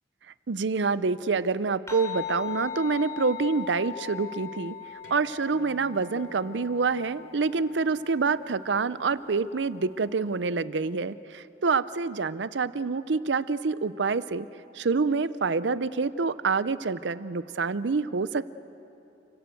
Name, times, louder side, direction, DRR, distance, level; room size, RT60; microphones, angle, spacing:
voice 1, 0.5-4.8 5.1-14.5 14.7-18.5, right 4 dB, 75° right, 16 dB, 0.6 m, -27 dB
sound 1, 1.9-10.6, left 9 dB, 20° left, 3.0 m, -41 dB
sound 2, 5.0-10.2, left 1 dB, 80° left, 2.9 m, -56 dB
29.5 x 16.5 x 7.8 m, 2.9 s
head